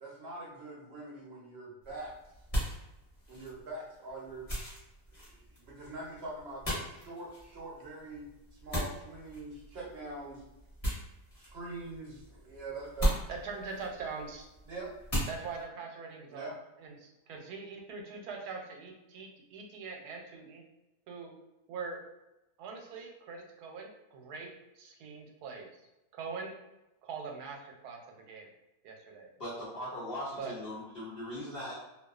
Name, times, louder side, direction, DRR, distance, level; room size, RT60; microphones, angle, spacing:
voice 1, 0.0-2.1 3.3-4.4 5.1-10.4 11.4-13.2 14.7-14.9 16.3-16.5, right 2 dB, 55° right, -4 dB, 0.7 m, -43 dB
sound 1, 1.8-15.6, equal, 30° left, 0.8 m, -38 dB
voice 2, 13.3-14.5 15.3-16.5 16.8-20.6 21.1-21.3 21.7-22.0 22.6-24.5 24.7-25.7 26.1-26.6 27.0-28.5 28.8-29.3 30.4-30.5, right 5 dB, 85° right, 1 dB, 1.1 m, -42 dB
voice 3, 29.4-31.7, left 1 dB, 60° left, -8 dB, 0.6 m, -39 dB
2.5 x 2.3 x 2.3 m, 0.94 s
omnidirectional pair, 1.6 m